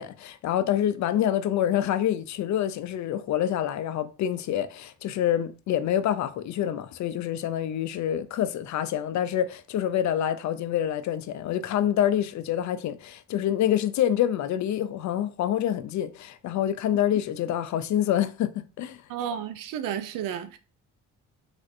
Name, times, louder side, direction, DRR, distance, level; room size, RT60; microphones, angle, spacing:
voice 1, 0.0-19.0, left 11 dB, 60° left, 0.4 m, -27 dB
voice 2, 19.1-20.6, right 9 dB, 70° right, 0.5 m, -32 dB
3.4 x 2.5 x 2.5 m
supercardioid pair, 55°, 33 cm